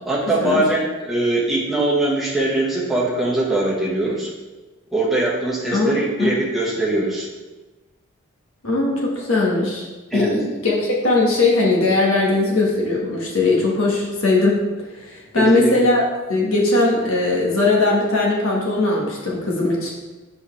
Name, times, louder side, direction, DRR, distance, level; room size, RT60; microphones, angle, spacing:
voice 1, 0.0-4.3 4.9-7.3 10.1-10.3 15.3-15.7, right 2 dB, ahead, -7 dB, 1.5 m, -21 dB
voice 2, 5.7-6.3 8.6-9.9 10.1-14.6 15.0-19.9, left 2 dB, 70° left, -3 dB, 1.4 m, -19 dB
7.8 x 4.4 x 3.3 m, 1.2 s
head